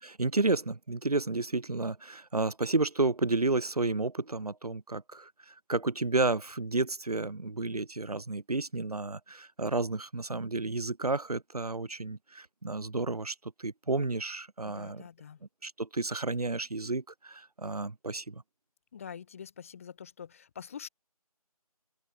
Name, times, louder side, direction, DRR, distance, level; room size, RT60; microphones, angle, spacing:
voice 1, 0.0-5.3 5.7-15.0 15.6-18.4, right 3 dB, 75° right, 1.1 m, -31 dB
voice 2, 14.6-15.4 18.9-20.9, left 7 dB, 20° left, 1.5 m, -45 dB
open air
figure-of-eight pair, 160°, 19 cm